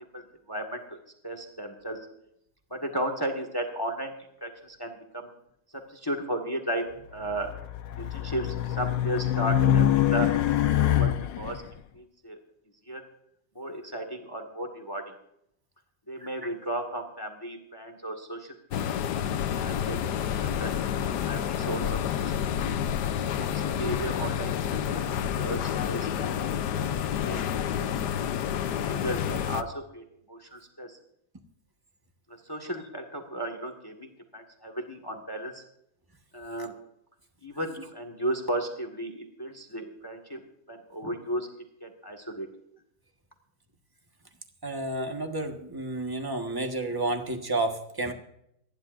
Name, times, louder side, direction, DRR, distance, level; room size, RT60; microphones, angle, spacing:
voice 1, 0.1-1.0 1.2-2.0 2.7-4.1 4.4-5.3 5.9-6.8 7.1-7.5 8.0-10.3 10.6-11.6 11.9-12.4 12.8-13.0 13.5-15.0 16.1-18.8 19.6-22.6 23.4-25.1 25.4-26.9 27.2-27.4 27.8-27.9 28.6-31.0 32.3-35.6 36.3-36.7 37.4-40.4 40.7-41.5 41.8-42.5, right 1 dB, 15° left, 5 dB, 1.7 m, -35 dB
Race car auto racing, 7.2-11.6, left 11 dB, 90° left, 1.4 m, -25 dB
sound 1, 18.7-29.6, left 9 dB, 75° left, 1.3 m, -29 dB
voice 2, 44.6-48.1, right 2 dB, 15° right, 4 dB, 1.3 m, -30 dB
28.0 x 11.0 x 2.6 m, 0.77 s
omnidirectional pair, 1.9 m